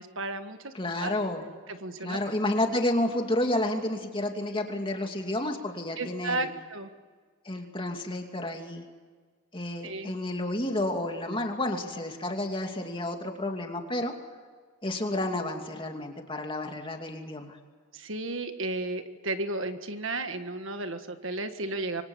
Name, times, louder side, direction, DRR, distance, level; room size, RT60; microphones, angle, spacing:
voice 1, 0.0-0.7 1.0-1.1 1.7-2.2 6.0-6.9 9.8-10.1 17.9-22.0, right 2 dB, 60° right, 8 dB, 1.6 m, -33 dB
voice 2, 0.7-1.4 2.0-6.5 7.4-8.8 9.5-14.1 14.8-17.6, left 1 dB, 25° left, 3 dB, 2.6 m, -30 dB
27.0 x 24.5 x 7.4 m, 1.5 s
head